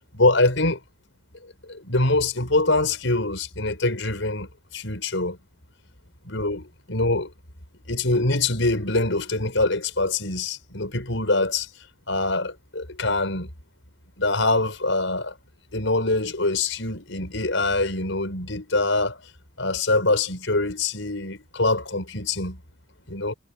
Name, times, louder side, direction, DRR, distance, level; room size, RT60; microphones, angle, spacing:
voice 1, 0.2-0.8 1.7-5.4 6.2-7.3 7.9-11.7 12.1-13.5 14.2-15.3 15.7-19.2 19.6-22.6 23.1-23.3, left 2 dB, 70° left, 6.2 m, -24 dB
head